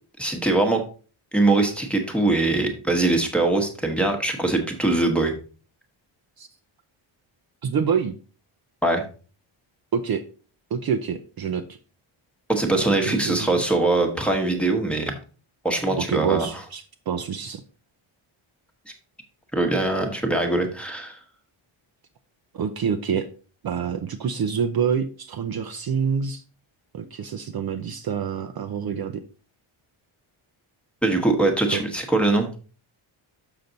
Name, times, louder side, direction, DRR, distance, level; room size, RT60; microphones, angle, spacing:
voice 1, 0.2-0.8 1.3-5.3 8.8-9.0 12.5-15.2 15.6-16.5 19.5-21.2 31.0-32.6, right 2 dB, ahead, 1 dB, 1.1 m, -22 dB
voice 2, 7.6-8.1 9.9-10.2 10.7-11.8 12.7-13.5 16.0-17.6 22.5-23.3 23.6-26.4 26.9-29.2 31.7-31.8, right 7 dB, 50° right, 6 dB, 0.6 m, -27 dB
6.8 x 5.9 x 3.9 m, 0.37 s
wide cardioid pair, 180°, 50 cm